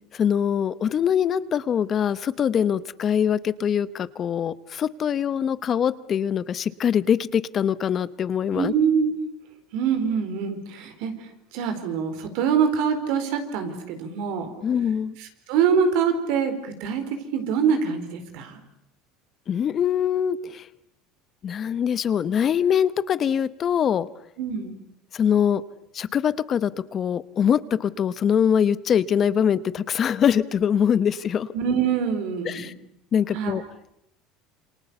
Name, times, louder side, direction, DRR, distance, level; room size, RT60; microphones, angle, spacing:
voice 1, 0.1-8.7 14.6-15.1 19.5-20.7 21.4-24.1 25.1-25.6 25.9-31.5 32.4-32.7 33.1-33.6, left 8 dB, 40° left, 16 dB, 0.9 m, -23 dB
voice 2, 8.5-9.1 9.7-14.5 15.2-17.0 17.3-18.6 24.4-24.7 31.5-32.7 33.3-33.5, right 7 dB, 75° right, 8 dB, 4.3 m, -24 dB
27.5 x 26.0 x 7.0 m, 0.79 s
supercardioid pair, 115°, 0 cm